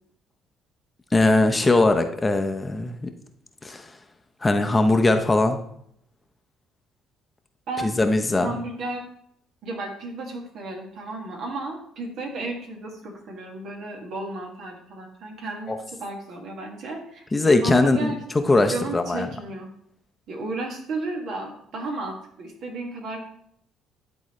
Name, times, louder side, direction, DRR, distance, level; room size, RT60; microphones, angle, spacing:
voice 1, 1.1-3.1 3.6-3.8 4.4-5.6 7.8-8.5 15.7-15.8 17.3-19.3, left 2 dB, 20° left, 6 dB, 0.7 m, -20 dB
voice 2, 8.3-9.0 9.6-17.2 17.6-18.2 18.7-19.7 20.3-23.2, right 2 dB, 65° right, 0 dB, 1.9 m, -33 dB
11.0 x 4.0 x 3.1 m, 0.69 s
supercardioid pair, 75°, 0 cm